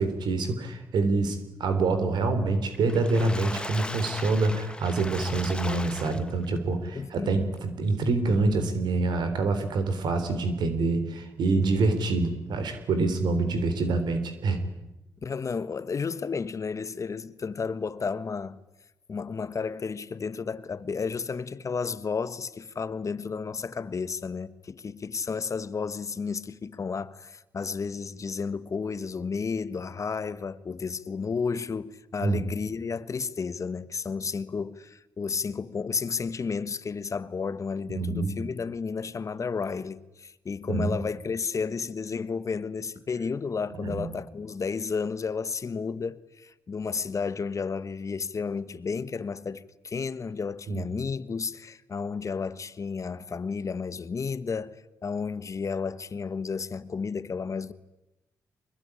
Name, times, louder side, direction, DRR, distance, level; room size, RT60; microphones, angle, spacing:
voice 1, 0.0-14.7 32.2-32.4 37.9-38.3 40.7-41.0 43.8-44.1 50.7-50.9, right 3 dB, 75° right, 3.6 m, -26 dB
Water / Splash splatter, 2.7-6.6 7.1-7.2 7.6-7.7, left 1 dB, 15° left, 1.5 m, -37 dB
voice 2, 6.9-7.4 15.2-18.6 19.1-57.7, left 5 dB, 45° left, 1.3 m, -32 dB
24.0 x 21.5 x 10.0 m
cardioid pair, 65°, 7 cm